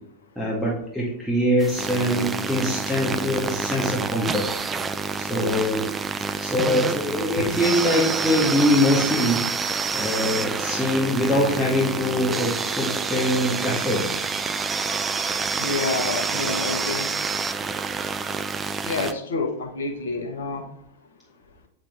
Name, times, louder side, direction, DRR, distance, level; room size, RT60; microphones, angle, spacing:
voice 1, 0.4-4.5 5.2-5.8 6.4-9.4 9.9-14.1, left 1 dB, ahead, -5 dB, 1.9 m, -23 dB
sound 1, 1.6-19.1, right 5 dB, 20° right, 0.4 m, -28 dB
voice 2, 15.6-17.1 18.8-20.6, left 3 dB, 65° left, 2 dB, 1.4 m, -28 dB
9.5 x 3.9 x 3.6 m, 0.71 s
figure-of-eight pair, 90°, 0 cm